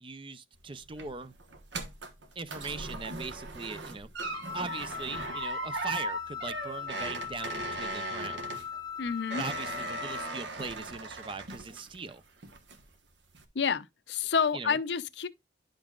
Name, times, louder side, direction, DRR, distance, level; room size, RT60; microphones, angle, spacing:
voice 1, 0.0-1.3 2.4-4.1 4.5-8.4 9.3-12.2 14.5-14.8, right 4 dB, 30° right, 0.5 m, -40 dB
sound 1, 0.5-12.1 12.4-12.9 13.3-13.4, right 3 dB, 75° right, 1.2 m, -39 dB
Wind instrument woodwind instrument, 4.2-10.4, left 8 dB, 20° left, 0.6 m, -40 dB
voice 2, 9.0-9.4 13.5-15.3, left 6 dB, 65° left, 0.6 m, -29 dB
10.5 x 5.3 x 2.4 m
head